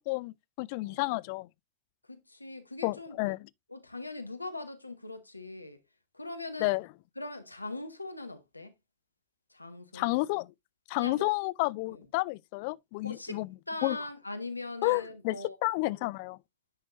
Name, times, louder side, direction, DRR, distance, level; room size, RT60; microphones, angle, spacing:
voice 1, 0.1-1.5 2.8-3.5 6.6-6.9 9.9-10.5 10.9-13.5 13.8-14.0 14.8-15.4 15.6-16.4, left 23 dB, 45° left, 0.3 m, -30 dB
voice 2, 2.1-3.3 3.7-5.8 6.1-6.7 7.2-8.7 9.5-10.1 11.0-11.3 11.9-12.0 13.0-13.4 13.7-15.6, left 2 dB, 85° left, 1.2 m, -41 dB
10.5 x 5.7 x 2.6 m
figure-of-eight pair, 90°, 0 cm